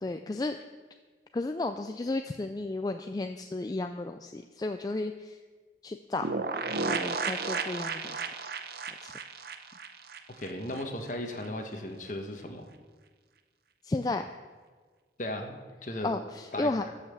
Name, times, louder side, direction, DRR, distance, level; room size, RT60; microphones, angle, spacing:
voice 1, 0.0-0.6 1.3-5.4 5.8-6.3 6.8-8.3 9.0-9.1 13.8-14.3 16.0-16.9, left 2 dB, 20° left, 7 dB, 0.3 m, -33 dB
sound 1, 6.2-10.8 11.1-11.2 11.4-11.5, right 4 dB, 60° right, 0.7 m, -33 dB
voice 2, 10.4-12.6 15.2-16.1 16.5-16.7, left 1 dB, 45° left, 4 dB, 1.3 m, -36 dB
14.0 x 5.7 x 6.9 m, 1.5 s
head